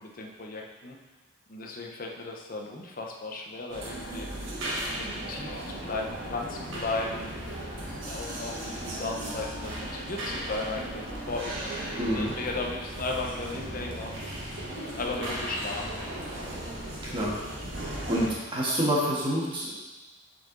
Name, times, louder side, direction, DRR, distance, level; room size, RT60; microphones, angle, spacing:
voice 1, 0.0-1.0 1.5-4.5 5.0-7.3 8.1-11.6 12.1-14.6 15.0-16.0, left 3 dB, 50° left, 1 dB, 0.8 m, -36 dB
sound 1, 3.7-18.3, right 1 dB, 90° right, 1.5 m, -36 dB
voice 2, 11.9-12.3 17.0-17.3 18.1-19.8, equal, 30° right, -5 dB, 1.6 m, -27 dB
7.3 x 4.6 x 3.9 m, 1.2 s
head